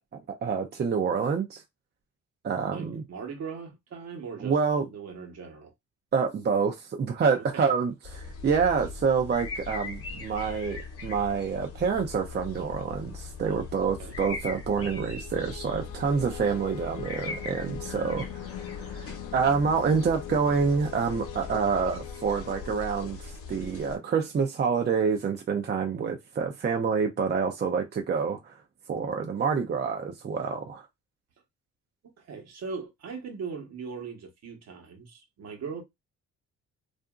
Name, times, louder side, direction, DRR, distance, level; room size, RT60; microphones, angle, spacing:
voice 1, 0.3-1.6 2.4-3.0 4.4-4.9 6.1-28.6 28.9-30.9, right 5 dB, 35° right, 0.5 m, -27 dB
voice 2, 2.7-4.6 4.9-5.7 7.3-7.7 13.4-14.2 32.2-35.8, right 5 dB, 60° right, 1.0 m, -40 dB
sound 1, 8.0-24.0, left 4 dB, 50° left, 0.8 m, -40 dB
sound 2, 15.2-23.7, left 11 dB, 80° left, 0.5 m, -42 dB
2.7 x 2.5 x 2.3 m
cardioid pair, 90°, 30 cm